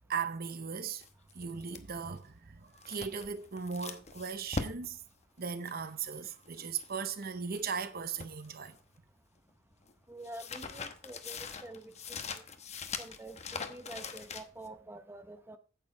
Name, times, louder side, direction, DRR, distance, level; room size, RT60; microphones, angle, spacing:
voice 1, 0.1-1.0 1.3-5.0 5.4-8.8, right 6 dB, 50° right, 0.8 m, -38 dB
sound 1, 1.0-7.7 8.0-9.1 9.4-14.7, left 4 dB, 35° left, 1.0 m, -42 dB
voice 2, 10.1-11.9 12.3-12.4 13.0-15.6, right 1 dB, 10° right, 0.8 m, -47 dB
9.1 x 8.5 x 4.5 m
head